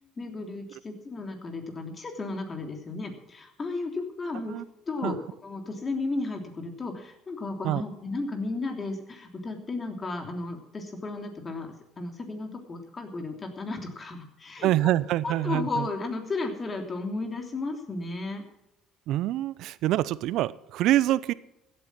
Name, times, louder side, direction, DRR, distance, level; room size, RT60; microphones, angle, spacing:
voice 1, 0.2-4.6 4.9-5.2 5.4-14.7 15.2-18.4, left 3 dB, 30° left, 4 dB, 3.1 m, -34 dB
voice 2, 14.6-15.9 19.1-21.3, right 14 dB, 65° right, 19 dB, 0.6 m, -25 dB
16.0 x 8.7 x 6.1 m, 0.90 s
hypercardioid pair, 70°, 0 cm